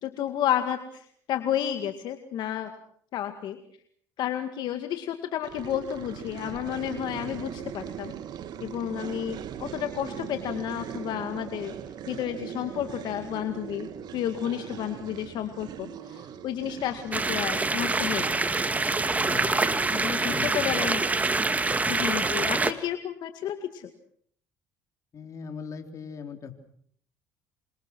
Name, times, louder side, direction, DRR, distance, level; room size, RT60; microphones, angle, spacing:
voice 1, 0.0-2.7 3.1-3.6 4.2-8.1 8.6-11.7 12.1-18.4 19.9-21.0 21.9-23.9, left 10 dB, 65° left, 7 dB, 2.1 m, -31 dB
sound 1, 5.4-19.3, right 9 dB, 55° right, 2.2 m, -40 dB
sound 2, 17.1-22.7, right 3 dB, 20° right, 2.0 m, -25 dB
voice 2, 19.2-20.7 21.8-22.1 25.1-26.5, left 6 dB, 40° left, 6 dB, 4.2 m, -40 dB
28.0 x 25.5 x 6.3 m, 0.63 s
cardioid pair, 105°, 8 cm